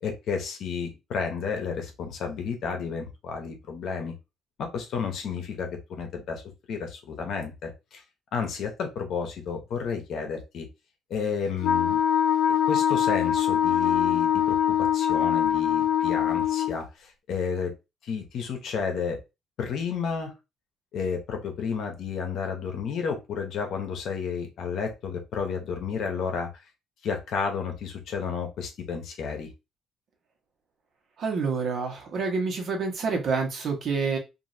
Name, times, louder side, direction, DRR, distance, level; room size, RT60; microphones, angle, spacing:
voice 1, 0.0-4.1 4.6-6.4 6.7-8.0 8.3-10.7 11.1-12.0 12.5-17.7 18.0-19.2 19.6-20.3 20.9-26.5 27.0-29.5, left 6 dB, 65° left, 4 dB, 0.8 m, -32 dB
Wind instrument woodwind instrument, 11.6-16.8, left 9 dB, 80° left, 0.3 m, -23 dB
voice 2, 31.2-34.2, right 4 dB, 50° right, 1 dB, 1.1 m, -28 dB
3.0 x 2.6 x 2.7 m, 0.25 s
cardioid pair, 135°, 0 cm